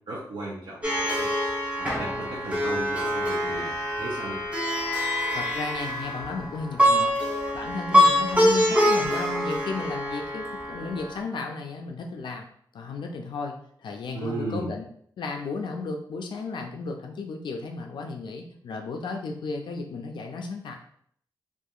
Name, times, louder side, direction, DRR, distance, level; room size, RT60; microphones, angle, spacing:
voice 1, 0.1-1.4 1.8-4.4 14.1-14.7, right 2 dB, 70° right, -7 dB, 0.7 m, -36 dB
Plucked string instrument, 0.8-11.2, equal, 15° right, 0.9 m, -25 dB
voice 2, 5.3-7.1 7.5-12.5 12.7-13.6 13.8-14.8 15.2-20.8, left 4 dB, 70° left, 3 dB, 0.3 m, -34 dB
2.7 x 2.4 x 2.3 m, 0.63 s
cardioid pair, 65°, 8 cm